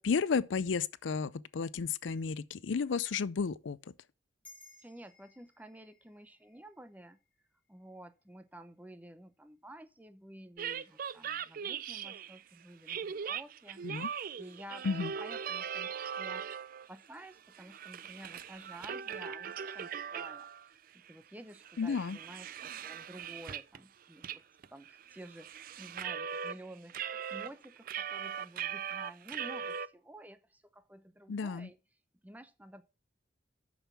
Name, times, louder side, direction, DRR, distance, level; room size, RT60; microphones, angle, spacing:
voice 1, 0.0-3.8 13.8-14.1 14.8-15.1 21.8-22.2 31.3-31.7, left 5 dB, 80° left, 0.5 m, -32 dB
sound 1, 4.4-9.1, left 2 dB, 5° left, 2.6 m, -62 dB
voice 2, 4.8-7.2 7.7-13.8 14.4-14.9 15.2-16.4 16.9-20.5 20.9-24.4 24.7-31.8 32.2-32.8, right 1 dB, 10° right, 0.7 m, -51 dB
sound 2, 10.6-12.4 12.9-16.9 17.2-20.7 21.0-21.1 21.5-23.8 24.2-24.4 24.6-26.6 26.9-29.9, right 8 dB, 50° right, 0.4 m, -40 dB
6.8 x 6.3 x 7.1 m
head